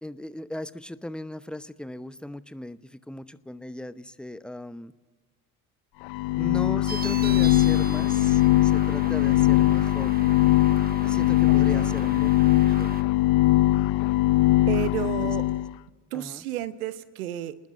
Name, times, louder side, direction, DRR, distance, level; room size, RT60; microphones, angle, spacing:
voice 1, 0.0-4.9 6.3-10.2 11.0-12.3 12.6-12.9 13.7-13.9 15.0-15.3 16.1-16.4, left 1 dB, ahead, 15 dB, 0.9 m, -38 dB
sound 1, 6.0-15.7, left 16 dB, 55° left, 0.7 m, -21 dB
sound 2, 6.9-13.0, right 5 dB, 20° right, 1.2 m, -39 dB
voice 2, 11.5-12.0 14.7-15.5 16.1-17.6, right 12 dB, 70° right, 15 dB, 1.1 m, -32 dB
28.0 x 20.0 x 9.7 m, 1.4 s
figure-of-eight pair, 50°, 44 cm